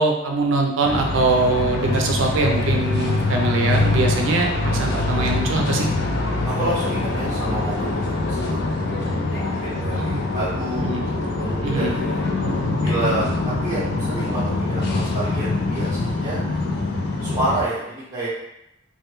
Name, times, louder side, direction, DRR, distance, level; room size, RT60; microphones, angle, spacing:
voice 1, 0.0-5.9 9.9-10.2 10.8-11.0 11.6-11.9, right 2 dB, 70° right, 2 dB, 0.4 m, -22 dB
sound 1, 0.8-17.6, left 2 dB, 55° left, 0.4 m, -24 dB
voice 2, 6.4-8.6 9.3-11.0 11.4-12.3 12.8-16.4 17.2-18.3, right 1 dB, 20° right, -11 dB, 0.7 m, -29 dB
2.2 x 2.1 x 3.0 m, 0.87 s
head